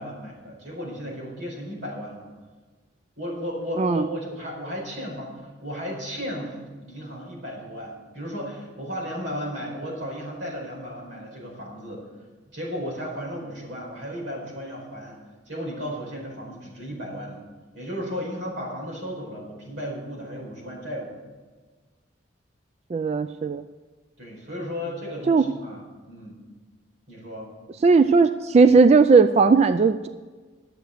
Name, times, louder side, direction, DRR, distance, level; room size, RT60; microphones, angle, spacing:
voice 1, 0.0-2.3 3.2-12.1 12.5-15.2 15.5-17.5 17.7-21.1 24.2-26.4 27.1-27.5, equal, 85° right, -2 dB, 4.8 m, -34 dB
voice 2, 22.9-23.6 25.3-25.4 27.8-30.1, right 4 dB, 35° right, 10 dB, 0.3 m, -17 dB
11.5 x 8.0 x 6.5 m, 1.4 s
head